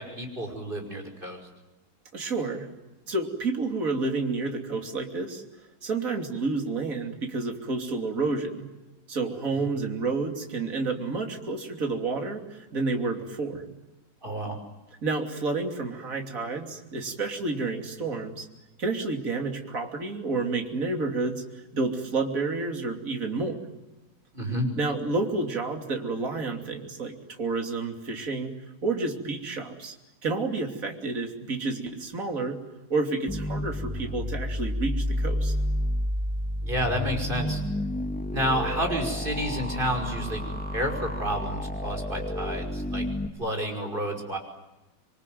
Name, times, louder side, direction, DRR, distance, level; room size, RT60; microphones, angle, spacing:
voice 1, 0.0-1.4 9.6-9.7 14.2-14.6 24.3-24.7 36.6-37.6 38.3-40.4 40.7-43.0 43.4-44.4, equal, 25° right, 3 dB, 5.9 m, -30 dB
voice 2, 2.1-2.7 3.1-5.4 5.8-8.7 9.1-13.7 15.0-18.5 18.8-21.4 21.7-23.6 24.8-28.6 28.8-29.9 30.2-32.6 32.9-35.5, right 3 dB, 45° right, 3 dB, 3.4 m, -30 dB
sound 1, 33.3-43.3, left 1 dB, 5° left, 2.0 m, -30 dB
27.0 x 23.5 x 9.4 m, 1.1 s
omnidirectional pair, 2.1 m